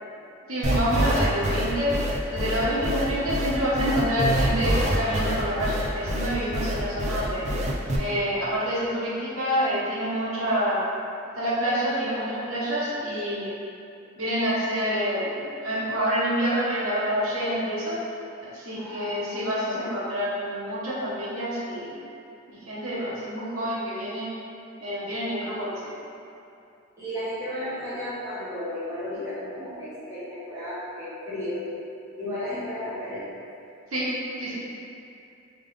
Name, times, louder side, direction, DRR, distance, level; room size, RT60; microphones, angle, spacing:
voice 1, 0.5-1.9 2.3-7.5 8.0-10.8 11.4-13.5 14.2-17.9 18.5-21.9 22.5-24.3 24.8-25.9 33.9-34.0 34.4-34.6, equal, 90° right, -9 dB, 1.2 m, -27 dB
sound 1, 0.6-8.0, right 1 dB, 35° right, 0.4 m, -26 dB
voice 2, 18.7-19.8 27.0-31.6 32.2-33.2, left 1 dB, 15° right, -13 dB, 1.3 m, -34 dB
3.5 x 3.3 x 3.3 m, 2.7 s
head